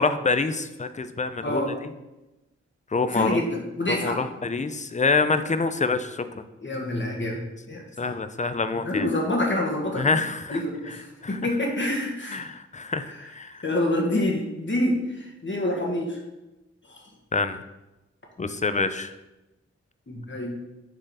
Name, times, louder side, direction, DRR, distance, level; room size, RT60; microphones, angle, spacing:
voice 1, 0.0-1.9 2.9-3.4 3.9-6.4 8.0-9.1 10.0-10.6 10.9-11.0 11.2-11.4 12.3-13.6 17.3-17.6 18.4-19.1, left 4 dB, 25° left, 11 dB, 0.6 m, -26 dB
voice 2, 1.4-1.7 3.1-4.2 6.6-8.1 8.8-10.2 10.5-12.4 13.1-16.2 16.9-17.0 20.1-20.6, left 1 dB, 40° left, 0 dB, 1.7 m, -27 dB
6.6 x 3.7 x 4.9 m, 1.0 s
cardioid pair, 40°, 29 cm